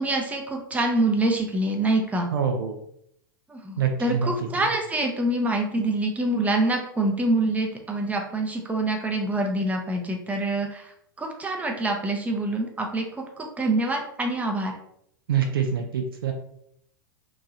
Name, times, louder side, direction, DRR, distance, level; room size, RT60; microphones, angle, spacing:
voice 1, 0.0-2.3 3.5-10.9 11.2-14.7, right 2 dB, 10° right, 1 dB, 0.6 m, -26 dB
voice 2, 2.3-2.8 3.8-4.3 15.3-16.3, right 7 dB, 75° right, 4 dB, 0.4 m, -25 dB
2.9 x 2.6 x 2.4 m, 0.72 s
hypercardioid pair, 95°, 12 cm